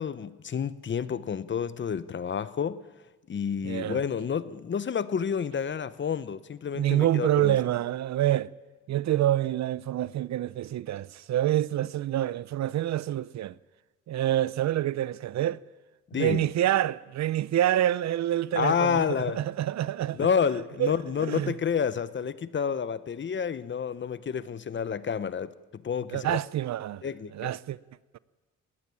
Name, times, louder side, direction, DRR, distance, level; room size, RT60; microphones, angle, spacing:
voice 1, 0.0-2.8 3.3-7.6 16.1-16.5 18.5-19.4 20.2-26.4 27.0-27.5, left 7 dB, 40° left, 0.9 m, -29 dB
voice 2, 3.6-4.0 6.8-8.5 8.9-13.6 14.1-15.6 16.1-20.2 20.8-20.9 21.2-21.5 26.1-27.0 27.3-27.8, right 12 dB, 65° right, 0.7 m, -27 dB
19.5 x 16.0 x 9.9 m
cardioid pair, 90°, 30 cm